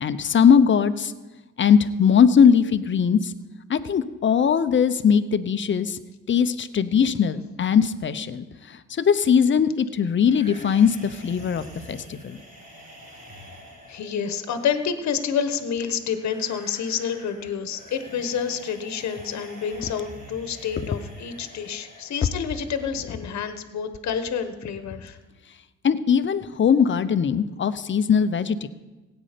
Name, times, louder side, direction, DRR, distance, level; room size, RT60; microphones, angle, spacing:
voice 1, 0.0-1.1 1.6-3.3 3.7-6.0 6.3-12.4 25.8-28.7, left 7 dB, 40° left, 12 dB, 0.8 m, -20 dB
sound 1, 10.2-23.2, equal, 25° right, 4.0 m, -46 dB
voice 2, 13.9-25.2, left 7 dB, 65° left, 9 dB, 1.2 m, -28 dB
16.5 x 9.0 x 5.1 m, 1.2 s
cardioid pair, 90°, 30 cm